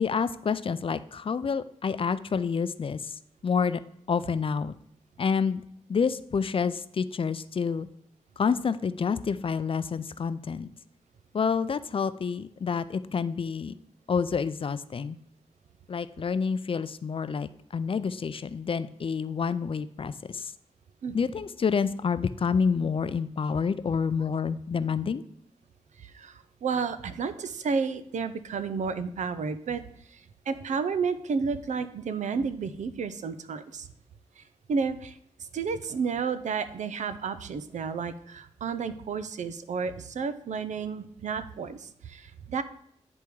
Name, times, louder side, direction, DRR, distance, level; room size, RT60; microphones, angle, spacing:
voice 1, 0.0-3.2 3.4-3.8 4.1-4.7 5.2-5.6 5.9-7.9 8.4-10.7 11.3-13.7 14.1-15.2 15.9-20.5 21.1-25.2, left 6 dB, 50° left, 14 dB, 0.4 m, -28 dB
voice 2, 26.0-29.8 30.1-33.9 34.4-42.6, right 5 dB, 85° right, 12 dB, 0.5 m, -32 dB
9.8 x 3.5 x 4.6 m, 0.70 s
cardioid pair, 75°, 12 cm